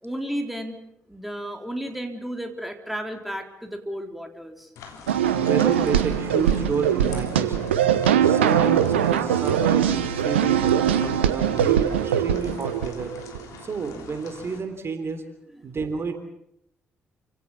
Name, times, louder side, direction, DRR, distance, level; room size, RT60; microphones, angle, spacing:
voice 1, 0.0-0.8 1.1-4.7, equal, ahead, 5 dB, 3.7 m, -33 dB
sound 1, 4.8-14.6, left 6 dB, 65° left, 3.5 m, -44 dB
sound 2, 5.1-13.4, right 9 dB, 80° right, 1.0 m, -21 dB
voice 2, 5.3-7.8 8.2-13.1 13.6-15.2 15.6-16.2, right 5 dB, 45° right, 8 dB, 3.4 m, -30 dB
29.0 x 17.0 x 7.1 m, 0.78 s
figure-of-eight pair, 40°, 6 cm